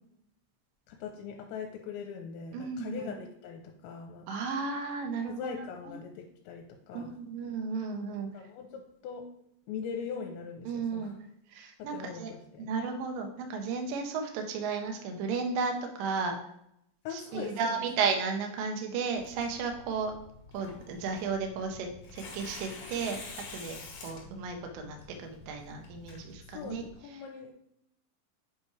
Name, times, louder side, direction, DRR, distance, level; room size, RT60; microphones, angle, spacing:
voice 1, 0.9-4.3 5.3-7.1 8.3-9.3 9.7-11.2 11.8-12.6 17.0-17.8 26.5-27.5, left 6 dB, 85° left, 2 dB, 2.9 m, -41 dB
voice 2, 2.5-3.1 4.3-5.5 5.9-6.0 6.9-8.3 10.7-11.1 11.5-12.3 12.6-16.4 17.1-20.1 20.5-23.2 23.5-26.8, right 5 dB, 85° right, 4 dB, 2.0 m, -34 dB
Tearing, 19.2-26.9, left 4 dB, 55° left, 2.2 m, -48 dB
8.0 x 3.2 x 4.7 m, 0.77 s
omnidirectional pair, 5.3 m